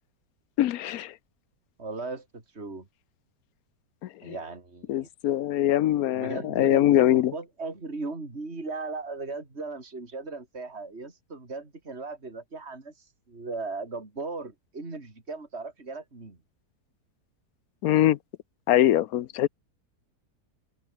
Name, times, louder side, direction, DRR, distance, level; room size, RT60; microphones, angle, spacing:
voice 1, 0.6-1.1 4.0-4.3 4.9-7.3 17.8-18.2 18.7-19.5, left 13 dB, 70° left, 1.1 m, -23 dB
voice 2, 1.8-2.9 4.2-5.1 6.1-16.4, right 3 dB, 40° right, 3.9 m, -37 dB
omnidirectional pair, 1.7 m